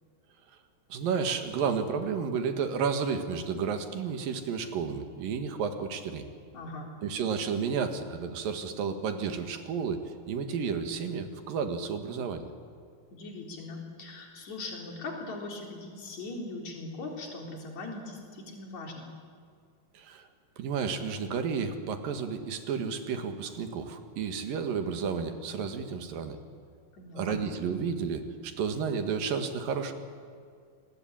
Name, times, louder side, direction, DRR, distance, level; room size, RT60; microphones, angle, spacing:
voice 1, 0.9-6.2 7.0-10.0 10.3-12.5 19.9-20.3 20.6-26.4 27.2-29.9, right 6 dB, 75° right, 7 dB, 3.4 m, -32 dB
voice 2, 6.5-6.9 13.1-19.1 26.9-27.4, left 2 dB, 55° left, 1 dB, 5.0 m, -40 dB
27.0 x 20.5 x 8.9 m, 2.2 s
omnidirectional pair, 4.1 m